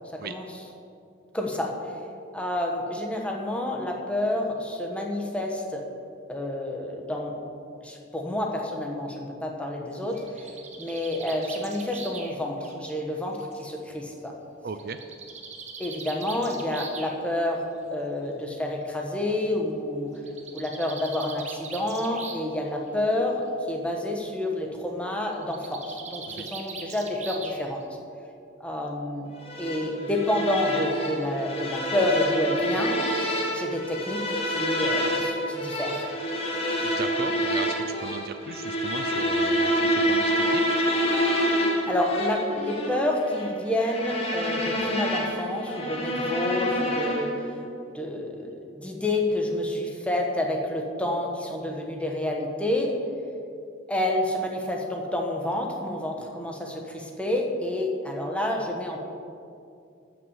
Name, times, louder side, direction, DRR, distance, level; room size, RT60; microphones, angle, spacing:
voice 1, 1.3-1.7 2.3-5.8 6.3-7.3 7.8-10.2 10.8-14.3 15.8-20.1 20.5-27.8 28.6-29.2 29.6-33.0 33.5-36.0 41.9-47.3 47.9-52.9 53.9-59.0, left 1 dB, 5° left, 0 dB, 1.3 m, -29 dB
Bird, 9.9-13.7 14.8-17.1 18.2-18.3 18.7-18.8 19.0-19.1 20.1-22.6 22.9-23.3 25.4-27.8, right 5 dB, 35° right, 1.1 m, -41 dB
voice 2, 14.6-15.0 26.3-26.5 36.8-40.6, right 4 dB, 50° right, 9 dB, 0.5 m, -37 dB
sound 1, 29.5-47.5, equal, 30° left, 1.6 m, -27 dB
13.0 x 6.0 x 7.3 m, 2.5 s
head